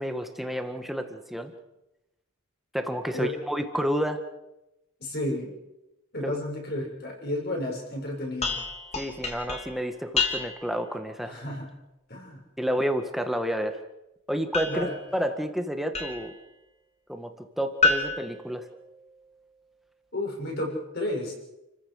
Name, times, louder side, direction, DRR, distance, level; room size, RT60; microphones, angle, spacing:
voice 1, 0.0-1.5 2.7-4.2 6.2-6.4 8.9-11.4 12.6-13.8 14.3-14.9 15.1-16.3 17.1-18.7, equal, ahead, 6 dB, 1.7 m, -30 dB
voice 2, 5.0-5.5 6.1-8.6 11.3-11.7 12.1-12.4 14.6-15.0 20.1-21.3, left 1 dB, 50° left, 0 dB, 7.0 m, -32 dB
sound 1, 8.4-10.8 14.5-16.4 17.8-19.3, left 3 dB, 30° left, 3.2 m, -30 dB
30.0 x 15.0 x 6.6 m, 0.93 s
head